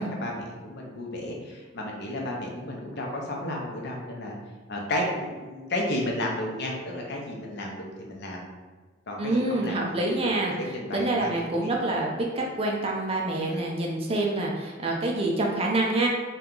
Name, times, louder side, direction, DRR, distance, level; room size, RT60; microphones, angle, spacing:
voice 1, 0.0-4.4 4.7-8.4 9.1-10.3 10.7-11.7 13.3-13.7, left 1 dB, 55° left, -1 dB, 0.6 m, -33 dB
voice 2, 9.2-10.5 10.9-16.1, right 2 dB, 30° right, -1 dB, 0.4 m, -26 dB
2.8 x 2.3 x 3.7 m, 1.3 s
head